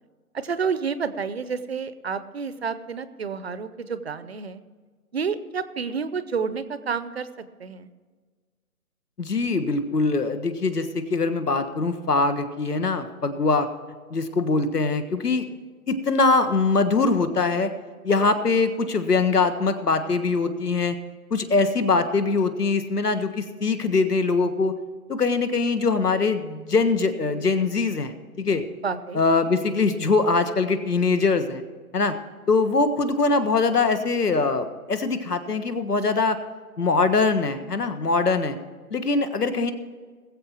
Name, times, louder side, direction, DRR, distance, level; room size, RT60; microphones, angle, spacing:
voice 1, 0.3-4.6 5.1-7.3 7.6-7.9 28.8-29.5, right 5 dB, 45° right, 13 dB, 0.7 m, -29 dB
voice 2, 9.2-13.7 14.1-15.4 15.9-17.7 18.0-21.0 21.3-24.8 25.1-28.6 29.1-31.6 31.9-32.1 32.5-36.4 36.8-38.6 38.9-39.7, left 3 dB, 85° left, 10 dB, 1.6 m, -22 dB
20.0 x 7.7 x 4.5 m, 1.5 s
figure-of-eight pair, 155°, 45 cm